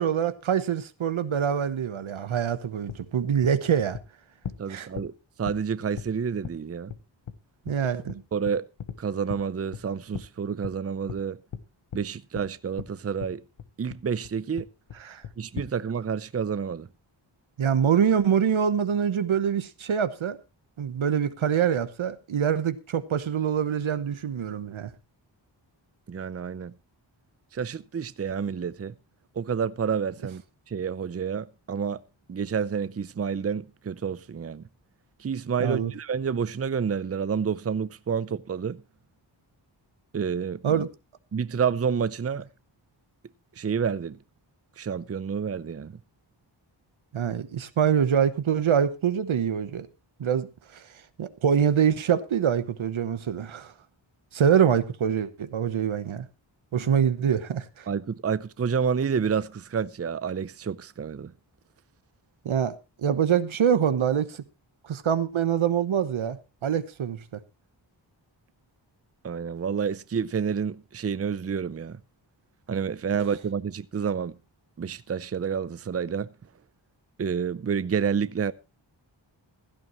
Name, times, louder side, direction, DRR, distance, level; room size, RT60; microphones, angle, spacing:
voice 1, 0.0-4.0 4.7-4.9 7.7-8.2 15.0-15.2 17.6-20.4 20.8-24.9 35.6-35.9 40.6-40.9 47.1-49.9 50.2-50.8 51.2-53.7 54.3-56.3 56.7-57.9 62.4-64.4 64.8-67.4, right 8 dB, 85° right, 1.1 m, -25 dB
sound 1, 2.9-3.0 3.4-3.5 3.9-4.0 4.4-4.6 5.0-5.1 5.5-5.6 6.0-6.1 6.4-6.5 6.9-7.0 7.3-7.4 7.7-7.8 8.1-8.2 8.5-9.0 9.3-9.4 9.7-9.8 10.1-10.3 10.6-10.8 11.1-11.2 11.5-11.6 11.9-12.0 12.3-12.4 12.8-12.9 13.2-13.3 13.6-14.0 14.2-14.3 14.6-15.0 15.2-15.7, left 8 dB, 85° left, 1.1 m, -37 dB
voice 2, 4.6-5.1 5.4-6.9 8.3-8.7 9.0-11.4 11.9-13.4 13.8-14.7 15.4-16.9 26.1-26.7 27.5-28.9 29.4-30.4 30.7-32.0 32.3-34.6 35.2-38.8 40.1-40.8 41.3-42.5 43.6-44.2 44.8-45.9 57.9-61.3 69.2-72.0 72.7-74.3 74.8-76.3 77.2-78.5, right 6 dB, 30° right, 0.6 m, -29 dB
16.0 x 12.5 x 3.0 m
wide cardioid pair, 75°, 47 cm